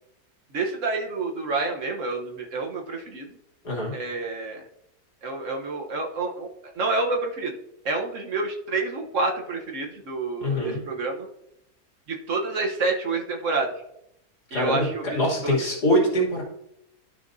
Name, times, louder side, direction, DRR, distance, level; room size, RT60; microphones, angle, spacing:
voice 1, 0.5-3.3 3.9-4.7 5.2-7.6 7.8-11.3 12.1-13.7 14.5-15.6, right 3 dB, 55° right, 2 dB, 1.3 m, -28 dB
voice 2, 10.4-10.8 14.5-16.4, equal, 80° left, -3 dB, 3.2 m, -24 dB
13.0 x 5.7 x 2.6 m, 0.80 s
omnidirectional pair, 1.7 m